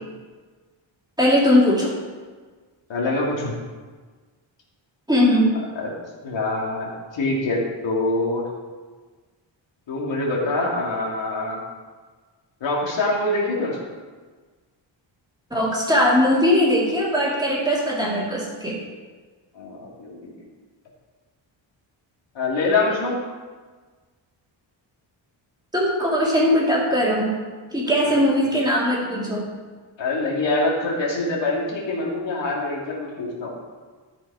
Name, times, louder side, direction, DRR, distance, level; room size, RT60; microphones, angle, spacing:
voice 1, 1.2-2.0 5.1-5.5 15.5-18.8 25.7-27.3 27.7-29.5, equal, 10° right, -5 dB, 2.3 m, -20 dB
voice 2, 2.9-3.5 5.8-5.9 6.2-8.4 9.9-11.6 12.6-13.8 19.5-20.4 22.3-23.2 28.0-28.2 30.0-33.5, left 2 dB, 70° left, -3 dB, 2.6 m, -25 dB
13.5 x 6.3 x 4.9 m, 1.4 s
wide cardioid pair, 165°, 47 cm